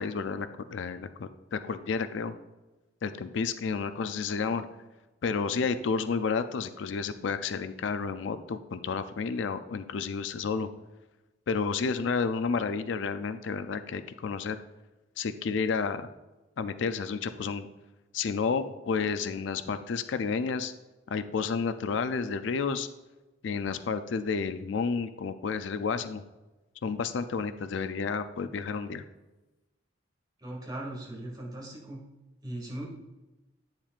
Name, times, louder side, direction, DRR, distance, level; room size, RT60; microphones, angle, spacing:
voice 1, 0.0-2.3 3.0-4.7 5.2-10.7 11.5-14.6 15.2-16.1 16.6-17.7 18.1-20.7 21.1-22.9 23.4-26.2 26.8-29.0, left 5 dB, 70° left, 11 dB, 0.4 m, -31 dB
voice 2, 30.4-32.0 32.4-32.9, right 1 dB, 20° right, -3 dB, 2.1 m, -38 dB
8.9 x 7.3 x 2.4 m, 1.1 s
head